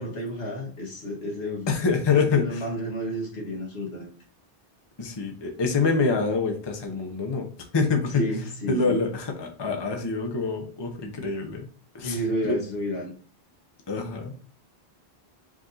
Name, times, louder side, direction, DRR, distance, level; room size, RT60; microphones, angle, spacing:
voice 1, 0.0-1.7 2.1-4.1 8.1-9.0 12.0-13.1, equal, 80° left, 1.6 m, -31 dB
voice 2, 1.7-2.6 5.0-7.5 7.7-8.2 8.7-11.7 11.9-12.5 13.9-14.3, left 4 dB, 30° left, 0.7 m, -26 dB
4.9 x 2.6 x 3.9 m
omnidirectional pair, 1.0 m